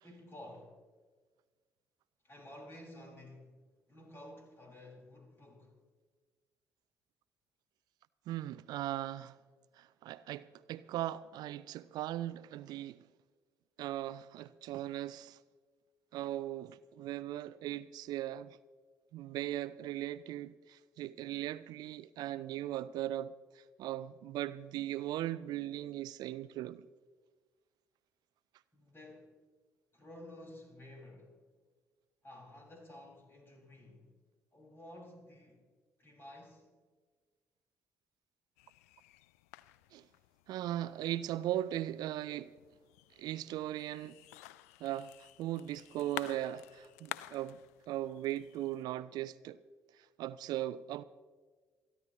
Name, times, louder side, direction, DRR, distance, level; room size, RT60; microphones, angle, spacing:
voice 1, 0.0-0.8 2.2-3.5 3.9-5.7 28.7-29.3 29.9-31.4 32.2-34.1 34.5-35.7 36.0-36.7, left 1 dB, 30° left, 5.6 m, -52 dB
voice 2, 8.3-9.3 9.8-13.0 13.8-15.4 16.1-18.6 19.1-26.8 39.9-40.0 40.5-42.5 43.2-44.2 44.8-47.6 47.9-49.6 50.2-51.0, right 13 dB, 60° right, 0.4 m, -38 dB
sound 1, 38.6-48.8, left 16 dB, 75° left, 0.4 m, -51 dB
27.5 x 11.0 x 3.1 m
figure-of-eight pair, 45°, 8 cm